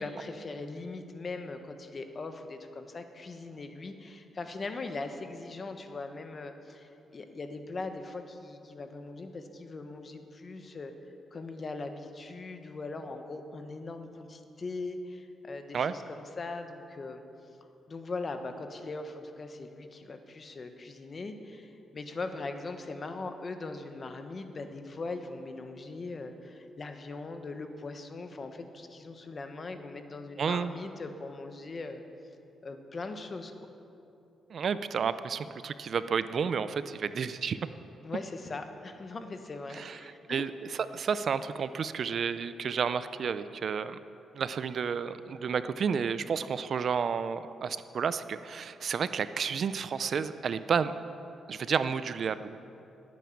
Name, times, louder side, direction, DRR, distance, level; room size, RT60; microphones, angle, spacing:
voice 1, 0.0-10.9 11.3-17.2 17.9-32.0 32.6-33.7 38.0-40.5, left 3 dB, 35° left, 7 dB, 1.3 m, -40 dB
voice 2, 30.4-30.7 34.5-37.6 39.7-40.0 40.3-44.0 44.3-50.9 51.5-52.6, right 6 dB, 55° right, 13 dB, 0.5 m, -31 dB
19.0 x 9.3 x 7.2 m, 2.8 s
cardioid pair, 115°, 0 cm